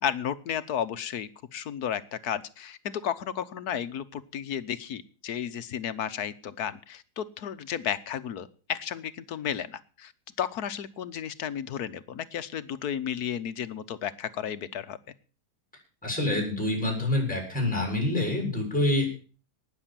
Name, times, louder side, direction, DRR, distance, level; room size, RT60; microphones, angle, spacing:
voice 1, 0.0-10.1 10.4-15.0, left 9 dB, 70° left, 13 dB, 1.4 m, -33 dB
voice 2, 16.0-19.1, left 1 dB, 5° left, 2 dB, 7.0 m, -26 dB
19.0 x 7.1 x 7.5 m, 0.39 s
omnidirectional pair, 1.7 m